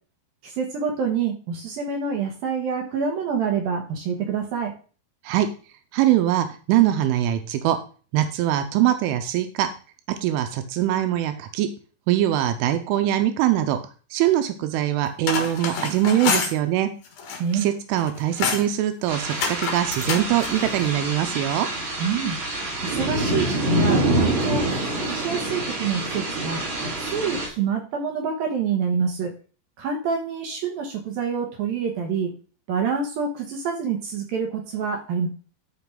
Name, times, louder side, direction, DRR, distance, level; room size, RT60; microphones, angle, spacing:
voice 1, 0.4-4.7 17.4-17.7 22.0-22.4 22.8-26.6 27.0-29.3 29.8-32.3 32.7-35.3, right 6 dB, 70° right, 3 dB, 2.3 m, -27 dB
voice 2, 5.9-7.8 8.1-9.7 10.2-11.7 12.1-13.8 14.1-16.9 17.5-21.7, right 12 dB, 85° right, 8 dB, 3.2 m, -22 dB
sound 1, 15.1-16.6 17.1-17.7 18.0-18.7 19.3-20.6, left 5 dB, 80° left, 1.6 m, -27 dB
sound 2, 19.1-27.5, right 1 dB, 35° right, 4.9 m, -26 dB
13.0 x 5.7 x 3.9 m, 0.39 s
omnidirectional pair, 5.7 m